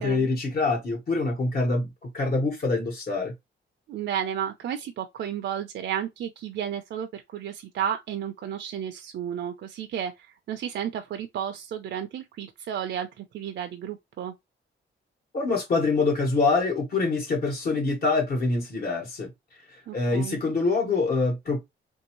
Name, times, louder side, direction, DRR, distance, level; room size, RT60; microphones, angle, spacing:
voice 1, 0.0-3.3 15.3-19.3 19.7-21.6, left 3 dB, 50° left, 1.2 m, -25 dB
voice 2, 3.9-14.3 19.9-20.4, right 9 dB, 65° right, 0.5 m, -32 dB
3.5 x 2.7 x 2.9 m
cardioid pair, 135°, 20 cm